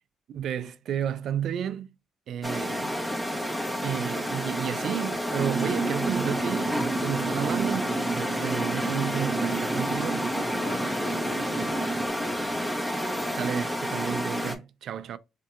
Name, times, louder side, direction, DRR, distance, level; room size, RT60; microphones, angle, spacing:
voice 1, 0.3-1.9 2.3-2.9 3.8-10.3 13.4-15.2, right 9 dB, 70° right, 0.4 m, -32 dB
sound 1, 2.4-14.6, equal, 10° left, 1.1 m, -30 dB
sound 2, 5.4-12.1, right 4 dB, 15° right, 0.5 m, -32 dB
voice 2, 8.3-8.8 10.6-12.5, left 5 dB, 90° left, 1.0 m, -44 dB
4.4 x 2.7 x 2.4 m
cardioid pair, 90°, 0 cm